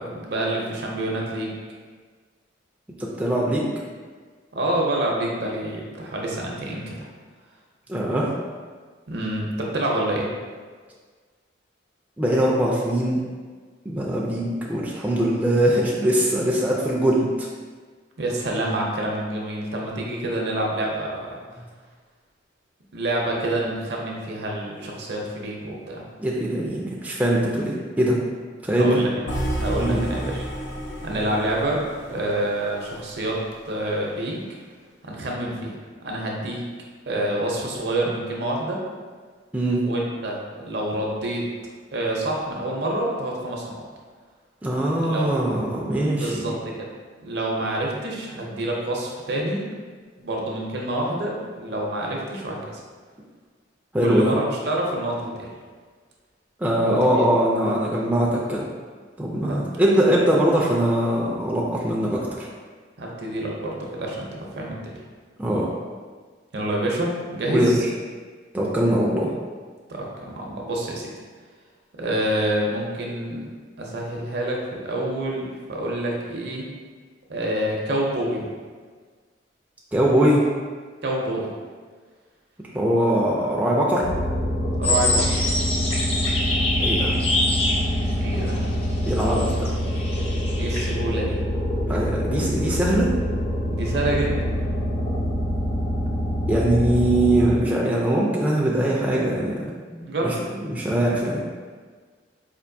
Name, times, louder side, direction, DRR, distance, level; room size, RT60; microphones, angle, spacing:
voice 1, 0.0-1.5 4.5-7.1 9.1-10.3 18.2-21.4 22.9-26.0 28.7-29.2 29.5-30.5 31.0-31.8 32.1-33.4 33.7-34.5 35.0-35.8 36.0-36.6 37.1-38.8 39.8-41.4 41.9-43.8 44.9-45.5 46.2-46.9 47.2-49.6 50.2-52.8 54.0-55.5 59.5-59.6 63.0-65.0 66.5-67.8 69.9-71.1 72.0-73.5 73.8-76.6 77.3-78.5 81.0-81.5 84.8-85.4 88.2-88.6 90.5-91.4 93.7-94.5 100.0-100.3, right 1 dB, 65° right, -2 dB, 0.7 m, -27 dB
voice 2, 3.0-3.7 7.9-8.3 12.2-13.2 13.9-17.5 26.2-28.2 28.6-29.0 29.8-30.0 39.5-39.8 44.6-46.5 53.9-54.3 56.6-58.6 59.2-62.5 65.4-65.7 67.5-67.7 68.5-69.3 79.9-80.5 82.7-84.0 86.8-87.1 89.0-89.7 91.9-93.1 96.5-99.6 99.9-101.5, right 1 dB, 10° right, -5 dB, 0.3 m, -22 dB
sound 1, 29.3-33.4, right 1 dB, 80° left, 0.6 m, -31 dB
sound 2, 84.0-97.6, equal, 55° left, 0.8 m, -25 dB
sound 3, 84.8-90.9, left 2 dB, 35° left, 0.6 m, -26 dB
4.4 x 2.5 x 2.6 m, 1.6 s
head